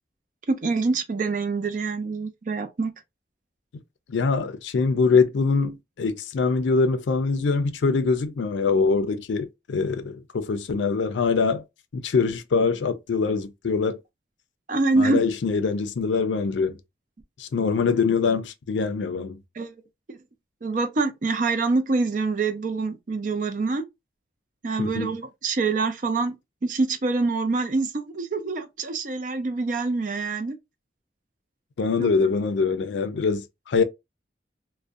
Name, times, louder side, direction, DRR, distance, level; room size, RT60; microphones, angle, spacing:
voice 1, 0.5-2.9 14.7-15.2 19.6-19.7 20.1-20.2 20.6-23.8 24.6-26.3 26.6-30.6 32.0-32.3, right 3 dB, 45° right, 0.4 m, -25 dB
voice 2, 4.1-11.6 11.9-14.0 15.0-16.8 17.4-19.4 24.8-25.1 31.8-33.8, left 4 dB, 85° left, 0.4 m, -23 dB
2.5 x 2.1 x 2.3 m
head